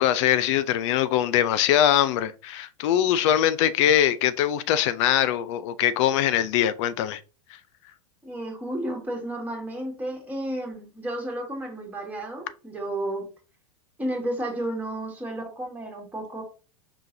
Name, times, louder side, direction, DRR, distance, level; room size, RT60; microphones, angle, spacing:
voice 1, 0.0-7.2, left 11 dB, 55° left, 0.5 m, -22 dB
voice 2, 8.2-13.3 14.0-16.4, right 1 dB, 10° right, 1.9 m, -32 dB
5.0 x 3.7 x 2.6 m
hypercardioid pair, 95°, 18 cm